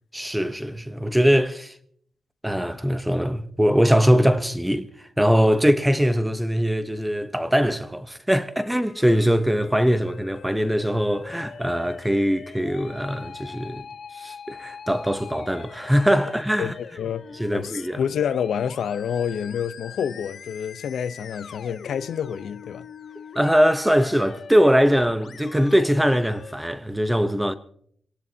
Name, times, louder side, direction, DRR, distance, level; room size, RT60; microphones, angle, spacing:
voice 1, 0.1-1.7 2.4-4.9 5.2-13.8 14.1-16.7 17.4-18.0 23.3-27.5, equal, 5° right, 0.8 m, -21 dB
Musical instrument, 8.6-26.5, left 6 dB, 50° left, 0.8 m, -43 dB
voice 2, 16.6-17.2 17.5-22.9, left 8 dB, 80° left, 0.7 m, -28 dB
24.5 x 18.0 x 2.8 m
wide cardioid pair, 175°, 0 cm